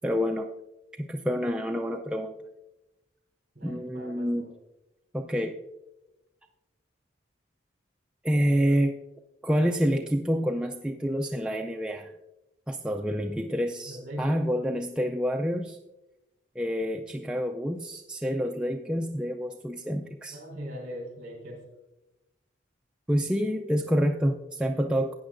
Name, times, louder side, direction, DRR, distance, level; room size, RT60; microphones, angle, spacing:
voice 1, 0.0-0.5 0.9-2.3 3.6-4.5 5.1-5.6 8.2-9.0 9.4-12.1 12.7-15.8 16.6-20.4 23.1-25.1, equal, 5° right, 2 dB, 0.3 m, -28 dB
voice 2, 3.5-4.5 13.9-14.7 20.3-21.6, equal, 40° right, -1 dB, 4.0 m, -40 dB
16.0 x 9.4 x 2.5 m, 1.0 s
head